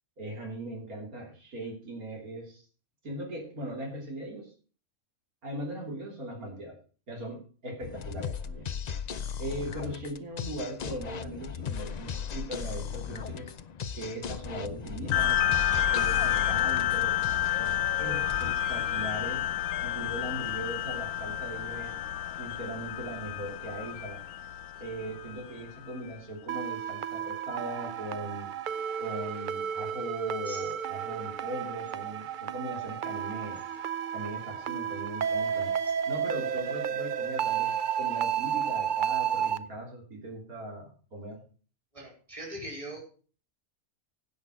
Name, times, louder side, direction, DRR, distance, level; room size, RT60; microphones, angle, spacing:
voice 1, 0.2-2.6 3.0-4.5 5.4-6.8 7.1-8.7 9.4-13.6 13.9-15.4 15.9-17.2 17.5-17.7 18.0-19.4 19.8-22.0 22.4-24.2 24.8-28.5 29.0-33.6 34.1-35.7 36.1-41.4, right 1 dB, 75° right, -1 dB, 3.6 m, -39 dB
sound 1, 7.8-19.5, left 7 dB, 55° left, 0.4 m, -37 dB
sound 2, 15.1-26.0, left 11 dB, 75° left, 1.2 m, -30 dB
sound 3, 26.5-39.6, right 8 dB, 55° right, 0.5 m, -32 dB
voice 2, 41.9-43.0, right 1 dB, 20° right, -1 dB, 3.9 m, -41 dB
16.0 x 5.7 x 6.3 m, 0.41 s
omnidirectional pair, 1.5 m